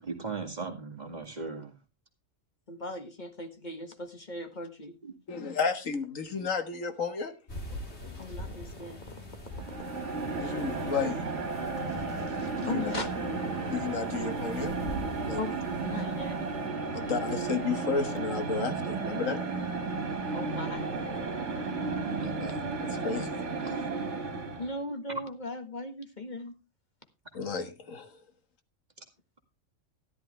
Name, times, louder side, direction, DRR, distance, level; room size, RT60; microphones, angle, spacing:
voice 1, 0.1-1.7 5.0-5.1 23.6-23.8 25.1-25.2, right 4 dB, 35° right, 2.1 m, -37 dB
voice 2, 2.7-4.9 8.2-9.0 12.4-13.1 15.3-15.6 15.8-16.4 16.9-17.1 20.3-20.8 24.6-26.5, left 2 dB, 35° left, 1.7 m, -38 dB
voice 3, 5.3-7.4 10.4-11.2 12.6-12.8 13.7-14.7 15.2-15.4 16.9-19.4 22.2-23.4 27.3-28.1, left 5 dB, 75° left, 1.8 m, -32 dB
sound 1, 7.5-16.7, left 1 dB, 55° left, 3.0 m, -44 dB
sound 2, 9.5-24.8, right 4 dB, 60° right, 2.3 m, -33 dB
13.5 x 11.0 x 3.3 m
omnidirectional pair, 1.4 m